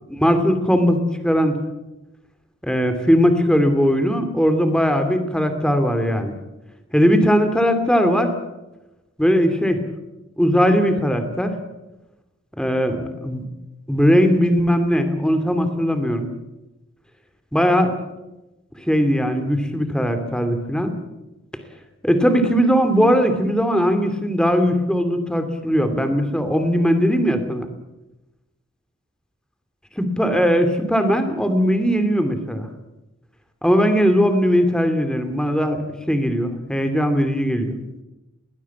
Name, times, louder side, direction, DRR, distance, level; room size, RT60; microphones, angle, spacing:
voice 1, 0.2-1.6 2.6-6.3 6.9-8.3 9.2-9.8 10.4-11.5 12.6-13.4 13.9-16.3 17.5-17.9 18.9-20.9 22.0-27.7 30.0-32.7 33.6-35.8 36.1-37.8, equal, 5° left, 8 dB, 2.5 m, -19 dB
21.5 x 19.5 x 8.5 m, 0.98 s
head